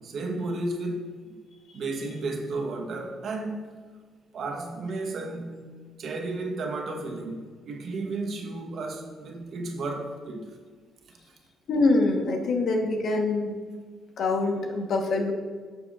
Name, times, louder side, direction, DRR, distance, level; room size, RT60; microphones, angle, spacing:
voice 1, 0.0-1.4 1.7-3.8 4.3-5.6 6.0-10.5, right 2 dB, 65° right, 3 dB, 1.0 m, -33 dB
voice 2, 11.7-13.5 14.2-15.3, left 3 dB, 65° left, 3 dB, 1.1 m, -24 dB
11.0 x 6.7 x 2.4 m, 1.5 s
cardioid pair, 90°, 0 cm